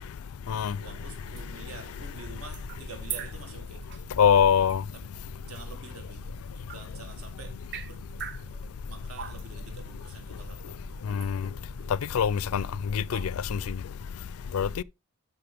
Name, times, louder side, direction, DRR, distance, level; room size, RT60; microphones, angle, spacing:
sound 1, 0.8-13.8, right 4 dB, 50° right, 0.7 m, -44 dB
voice 1, 0.8-3.8 4.9-5.0 5.4-6.3 6.7-7.5 7.8-8.0 8.5-8.6 8.8-10.8, right 3 dB, 75° right, 2.0 m, -47 dB
voice 2, 4.2-4.8 11.1-11.4 12.1-12.6 12.9-13.2 13.5-13.6 14.5-14.7, left 7 dB, 70° left, 0.4 m, -22 dB
12.5 x 5.4 x 3.4 m
head